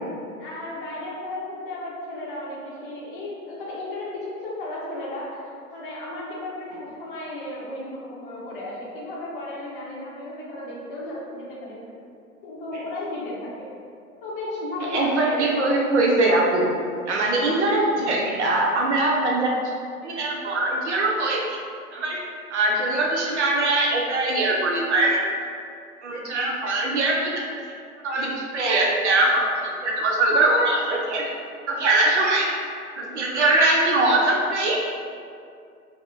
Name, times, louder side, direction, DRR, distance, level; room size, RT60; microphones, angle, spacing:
voice 1, 0.4-11.9 12.4-13.7 14.2-15.3 17.4-17.6 26.1-26.4 33.0-33.2, left 1 dB, 35° left, -6 dB, 0.7 m, -34 dB
voice 2, 14.9-16.7 17.1-19.7 20.0-21.4 21.9-22.2 22.5-25.2 26.0-27.3 28.0-31.3 31.7-32.5 33.0-34.8, right 2 dB, 50° right, -2 dB, 0.5 m, -22 dB
3.5 x 2.1 x 2.3 m, 2.3 s
figure-of-eight pair, 115°, 45 cm